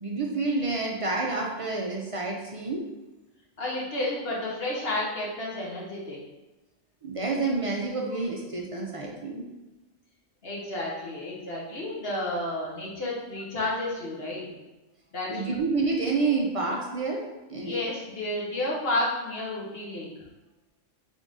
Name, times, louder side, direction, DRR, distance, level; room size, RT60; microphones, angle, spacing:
voice 1, 0.0-2.8 7.0-9.5 15.3-17.8, right 3 dB, 55° right, -1 dB, 0.4 m, -29 dB
voice 2, 3.6-6.2 8.1-8.2 10.4-14.5 15.1-15.6 17.6-20.1, left 1 dB, 55° left, -4 dB, 1.3 m, -31 dB
3.9 x 3.6 x 3.6 m, 1.1 s
omnidirectional pair, 1.3 m